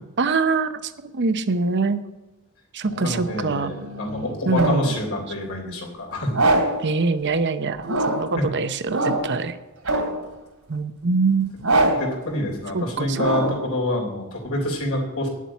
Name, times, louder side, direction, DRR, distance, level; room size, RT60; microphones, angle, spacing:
voice 1, 0.2-2.0 2.7-3.7 4.5-5.0 6.8-9.6 10.7-11.6 12.7-13.6, right 4 dB, 55° right, 11 dB, 0.7 m, -24 dB
sound 1, 2.9-4.9 6.3-6.9 7.8-8.4 8.9-9.4 9.8-10.3 11.6-12.2 13.1-13.7, right 2 dB, 80° right, 2.7 m, -23 dB
voice 2, 3.0-6.3 8.4-8.5 11.9-15.3, left 1 dB, 70° left, 0 dB, 3.4 m, -27 dB
9.8 x 7.3 x 8.4 m, 1.0 s
head